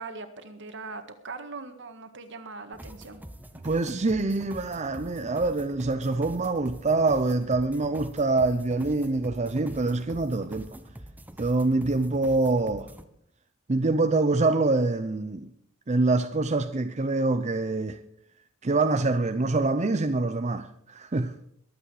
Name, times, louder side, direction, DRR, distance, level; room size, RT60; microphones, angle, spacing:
voice 1, 0.0-3.2, right 4 dB, 60° right, 1.7 m, -40 dB
sound 1, 2.7-13.0, right 1 dB, 10° right, 1.0 m, -45 dB
voice 2, 3.6-10.7 11.4-12.9 13.7-15.5 15.9-18.0 18.6-21.3, right 3 dB, 35° right, 0.6 m, -25 dB
22.5 x 8.4 x 4.9 m
head